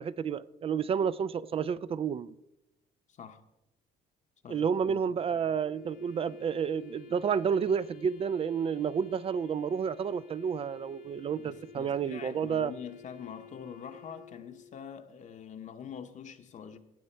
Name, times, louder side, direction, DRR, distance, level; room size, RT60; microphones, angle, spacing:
voice 1, 0.0-2.3 4.5-12.7, right 7 dB, 35° right, 0.4 m, -30 dB
voice 2, 3.1-3.4 4.4-5.2 11.3-16.8, left 8 dB, 45° left, 0.9 m, -45 dB
Wind instrument woodwind instrument, 5.6-14.9, left 6 dB, 75° left, 1.3 m, -52 dB
16.5 x 6.3 x 4.4 m
cardioid pair, 110°, 17 cm